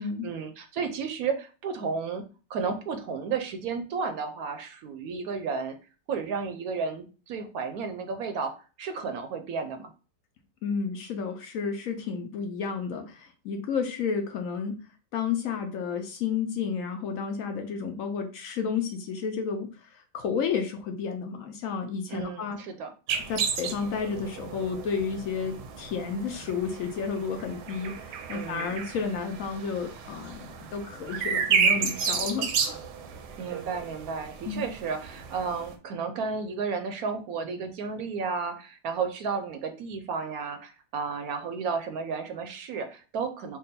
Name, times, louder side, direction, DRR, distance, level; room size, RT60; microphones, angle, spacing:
voice 1, 0.0-2.2 2.5-5.8 6.1-9.9 22.1-22.9 28.3-28.8 33.4-43.6, right 5 dB, 70° right, 6 dB, 1.0 m, -33 dB
voice 2, 10.6-14.7 15.1-22.6 23.3-32.8 34.5-34.7, left 6 dB, 70° left, 5 dB, 0.9 m, -31 dB
sound 1, 23.1-35.7, right 6 dB, 90° right, 1.2 m, -32 dB
3.7 x 2.2 x 4.0 m, 0.35 s
omnidirectional pair, 1.7 m